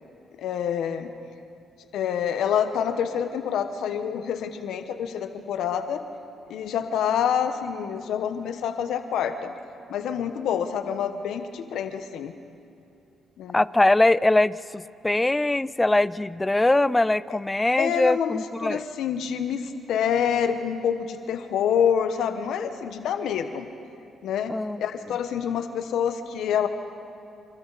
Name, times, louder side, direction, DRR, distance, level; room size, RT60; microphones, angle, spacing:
voice 1, 0.4-1.1 1.9-6.0 6.5-9.5 9.9-12.3 13.4-13.6 17.8-23.7 24.2-24.5 24.8-26.7, left 8 dB, 80° left, 8 dB, 1.1 m, -27 dB
voice 2, 13.5-18.8 24.5-24.8, left 2 dB, 15° left, 18 dB, 0.5 m, -22 dB
28.5 x 26.5 x 4.1 m, 2.7 s
cardioid pair, 90°, 0 cm